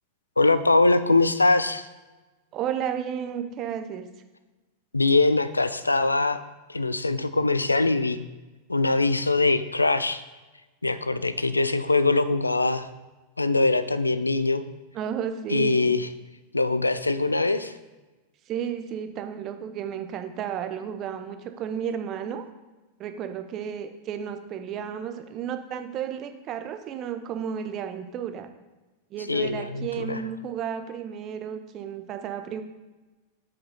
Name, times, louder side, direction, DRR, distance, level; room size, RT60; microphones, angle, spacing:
voice 1, 0.4-1.9 4.9-6.4 6.7-8.2 8.7-10.2 10.8-12.9 13.4-14.6 15.5-16.1 16.5-17.7 29.3-30.2, left 3 dB, 80° left, 13 dB, 0.3 m, -22 dB
voice 2, 2.5-4.1 14.9-15.9 18.5-22.4 23.0-28.5 29.1-32.6, right 8 dB, 35° right, 8 dB, 0.6 m, -33 dB
6.8 x 5.3 x 3.9 m, 1.2 s
figure-of-eight pair, 90°, 0 cm